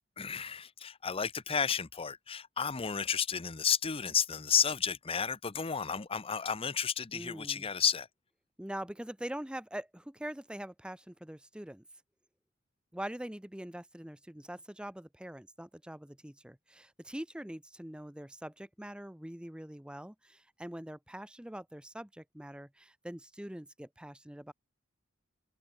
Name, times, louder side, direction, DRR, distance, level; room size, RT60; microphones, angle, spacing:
voice 1, 0.2-8.1, left 7 dB, 30° left, 0.8 m, -32 dB
voice 2, 7.1-7.6 8.6-11.8 12.9-24.5, right 1 dB, 5° right, 0.7 m, -43 dB
open air
head